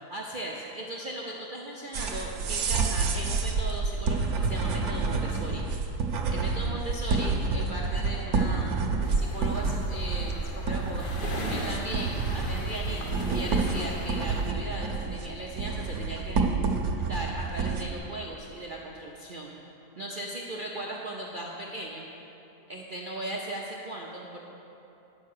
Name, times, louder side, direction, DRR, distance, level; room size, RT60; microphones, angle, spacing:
voice 1, 0.1-5.6 6.3-8.8 9.1-11.1 11.5-16.4 17.0-19.5 20.0-22.1 22.7-24.4, right 1 dB, 50° right, -3 dB, 0.6 m, -37 dB
sound 1, 1.9-18.0, right 4 dB, 65° right, 1.2 m, -29 dB
sound 2, 9.0-14.5, left 2 dB, 40° left, 0.8 m, -39 dB
9.6 x 6.5 x 6.5 m, 2.9 s
omnidirectional pair, 1.8 m